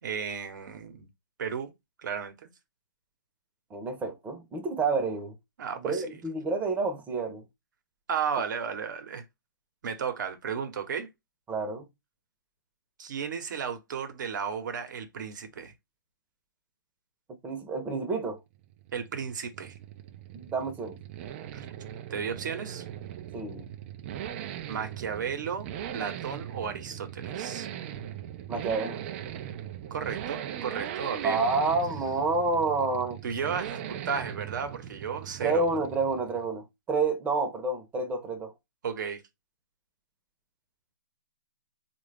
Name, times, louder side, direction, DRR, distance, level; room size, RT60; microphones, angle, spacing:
voice 1, 0.0-1.1 1.4-1.7 2.0-2.5 5.6-6.2 8.1-9.2 9.8-11.1 13.0-15.7 18.9-19.8 21.5-21.6 22.1-22.8 24.7-25.7 25.9-27.7 29.9-31.4 33.2-35.7 38.8-39.2, right 7 dB, 60° right, 1.0 m, -34 dB
voice 2, 3.7-5.3 5.8-7.4 11.5-11.9 17.4-18.4 20.3-21.0 23.3-23.6 28.5-29.0 31.2-33.2 35.4-38.5, right 3 dB, 15° right, 0.8 m, -29 dB
sound 1, 18.5-36.6, right 10 dB, 35° right, 0.4 m, -39 dB
3.8 x 2.4 x 3.3 m
hypercardioid pair, 140°, 12 cm